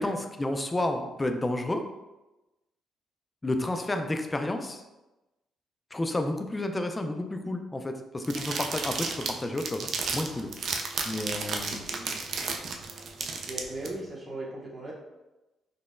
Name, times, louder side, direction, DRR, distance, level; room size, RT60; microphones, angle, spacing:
voice 1, 0.0-1.8 3.4-4.8 5.9-10.5 11.0-11.8, left 1 dB, 20° left, 6 dB, 0.3 m, -31 dB
sound 1, 8.2-13.9, right 4 dB, 60° right, 0.3 m, -33 dB
voice 2, 11.9-12.3 13.5-14.9, right 2 dB, 30° right, -3 dB, 0.7 m, -38 dB
3.7 x 2.0 x 2.4 m, 1.0 s
cardioid pair, 90°, 0 cm